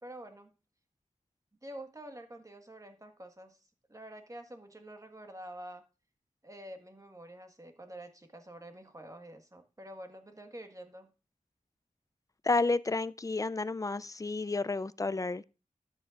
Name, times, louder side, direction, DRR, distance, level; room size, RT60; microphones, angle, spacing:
voice 1, 0.0-0.5 1.6-3.6 3.9-5.8 6.4-11.1, right 1 dB, 25° right, 1.5 m, -48 dB
voice 2, 12.4-15.4, left 3 dB, 25° left, 0.4 m, -31 dB
12.5 x 9.4 x 2.5 m
wide cardioid pair, 80°, 14 cm